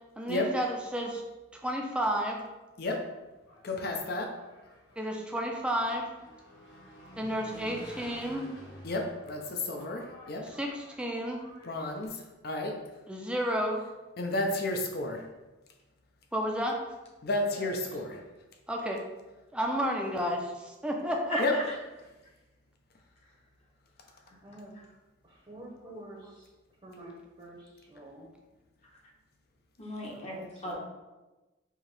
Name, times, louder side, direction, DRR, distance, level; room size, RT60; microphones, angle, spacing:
voice 1, 0.2-1.2 1.5-2.4 5.0-6.1 7.2-8.5 10.4-11.4 13.1-13.8 16.3-16.8 18.7-19.0 19.5-21.6, equal, 5° right, 0 dB, 0.4 m, -31 dB
Engine, 3.2-12.1, left 1 dB, 70° left, 0.9 m, -51 dB
voice 2, 3.6-4.3 8.8-10.4 11.6-12.7 14.2-15.2 17.2-18.1 21.4-21.5, left 2 dB, 55° left, 3 dB, 0.6 m, -31 dB
voice 3, 17.4-18.2 24.4-24.8 25.2-26.5 26.8-28.3 30.1-30.8, right 1 dB, 30° right, -4 dB, 0.8 m, -48 dB
voice 4, 21.3-21.7 24.3-24.4 28.9-29.0 29.8-30.8, equal, 35° left, -3 dB, 0.9 m, -37 dB
4.5 x 2.8 x 3.2 m, 1.1 s
head